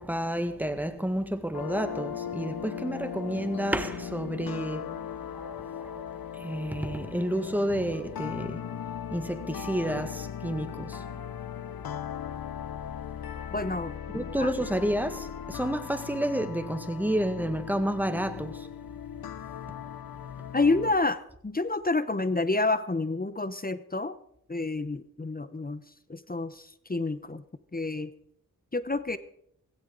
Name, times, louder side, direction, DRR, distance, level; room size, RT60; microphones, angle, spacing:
voice 1, 0.0-8.8 9.1-11.1 11.6-11.9 14.1-18.7 20.3-20.5, right 1 dB, 5° right, 1.8 m, -31 dB
sound 1, 1.5-20.9, left 9 dB, 70° left, 0.7 m, -38 dB
voice 2, 13.5-14.5 20.5-24.2 24.5-25.8 26.1-27.4 27.7-28.1 28.7-29.2, left 3 dB, 25° left, 0.9 m, -29 dB
16.5 x 16.0 x 4.0 m
cardioid pair, 50°, 37 cm